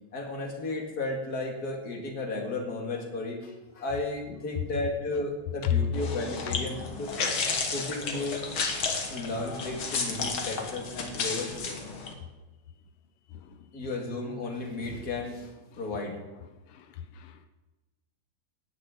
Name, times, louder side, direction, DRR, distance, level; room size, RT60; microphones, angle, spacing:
voice 1, 0.1-7.4 7.7-8.4 8.7-11.7 13.7-15.5 15.8-16.2, left 2 dB, 35° left, 2.2 m, -34 dB
sound 1, 5.9-12.1, left 4 dB, 50° left, 2.0 m, -32 dB
voice 2, 13.3-13.9 15.7-15.8 16.7-17.5, left 11 dB, 85° left, 1.2 m, -34 dB
18.0 x 9.4 x 3.8 m
omnidirectional pair, 3.4 m